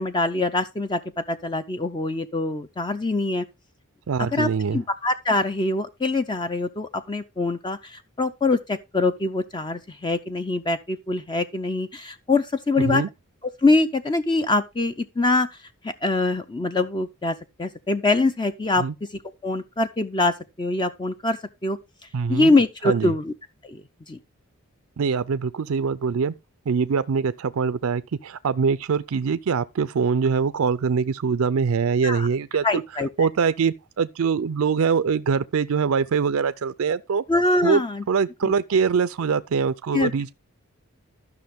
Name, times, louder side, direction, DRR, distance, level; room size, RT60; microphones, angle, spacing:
voice 1, 0.0-3.5 4.2-13.0 13.6-15.6 15.8-18.8 19.4-21.8 22.3-23.3 23.6-23.8 24.1-24.2 32.0-32.3 32.6-33.3 37.3-38.0 38.4-38.5 39.9-40.1, left 2 dB, 20° left, 0.4 m, -24 dB
voice 2, 4.1-4.8 12.8-13.1 18.8-18.9 22.1-22.5 22.8-23.1 25.0-26.3 26.7-32.6 33.2-37.2 37.6-37.8 38.1-40.3, right 5 dB, 70° right, 0.4 m, -23 dB
13.0 x 6.0 x 3.5 m
head